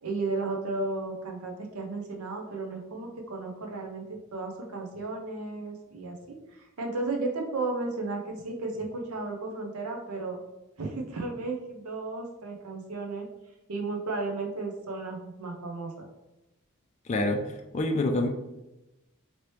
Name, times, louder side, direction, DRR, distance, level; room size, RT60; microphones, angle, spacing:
voice 1, 0.0-4.0 4.3-10.4 10.8-13.3 13.7-16.1, right 3 dB, 90° right, 1 dB, 0.7 m, -34 dB
voice 2, 17.0-18.3, left 2 dB, 30° left, 4 dB, 0.3 m, -27 dB
3.0 x 2.9 x 3.1 m, 0.99 s
head